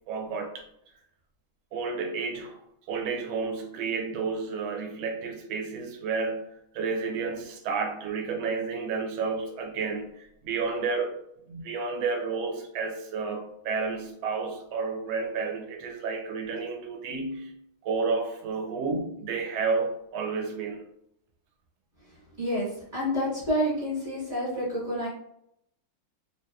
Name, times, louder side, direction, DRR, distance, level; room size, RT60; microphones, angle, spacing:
voice 1, 0.1-0.6 1.7-2.6 2.9-6.5 6.7-11.1 11.5-17.5 17.8-20.8, right 4 dB, 80° right, 3 dB, 1.3 m, -31 dB
voice 2, 22.4-25.1, equal, 35° right, -9 dB, 1.4 m, -28 dB
3.2 x 2.7 x 2.2 m, 0.76 s
omnidirectional pair, 2.2 m